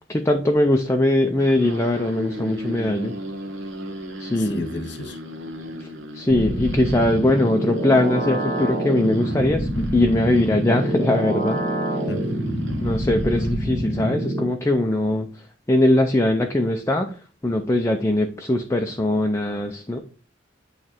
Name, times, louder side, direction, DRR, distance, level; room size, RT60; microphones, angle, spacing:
voice 1, 0.1-3.1 4.2-4.6 5.8-5.9 6.1-11.6 12.8-15.3 15.7-17.1 17.4-20.0, left 1 dB, 15° left, 0.5 m, -21 dB
sound 1, 1.4-13.6, equal, 75° right, 1.3 m, -38 dB
voice 2, 4.4-5.2 12.1-12.8, left 1 dB, 65° left, 0.9 m, -33 dB
sound 2, 6.3-14.4, right 1 dB, 50° right, 1.5 m, -26 dB
8.8 x 3.2 x 4.4 m
head